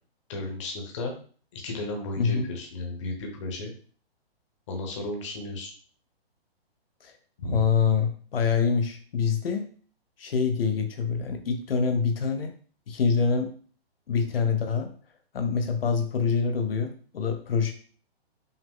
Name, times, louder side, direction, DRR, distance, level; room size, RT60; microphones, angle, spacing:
voice 1, 0.3-1.1 1.5-3.7 4.7-5.7 7.4-7.6, left 2 dB, 30° left, 1 dB, 0.9 m, -34 dB
voice 2, 2.2-2.5 7.0-7.1 7.5-9.7 10.2-12.5 12.9-13.5 14.1-14.9 15.3-17.7, left 6 dB, 65° left, 6 dB, 0.7 m, -25 dB
5.7 x 2.1 x 3.6 m, 0.42 s
hypercardioid pair, 170°, 31 cm